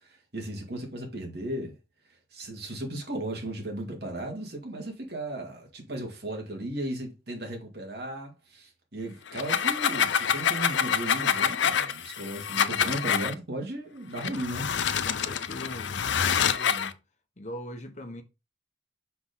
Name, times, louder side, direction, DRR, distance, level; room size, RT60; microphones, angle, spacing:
voice 1, 0.0-1.8 2.3-14.8, right 1 dB, 60° right, 2.4 m, -36 dB
sound 1, 9.3-13.3 14.2-16.9, left 7 dB, 85° left, 0.6 m, -26 dB
voice 2, 15.0-17.0 17.4-18.2, left 1 dB, 40° left, 1.1 m, -41 dB
5.8 x 5.3 x 4.0 m
head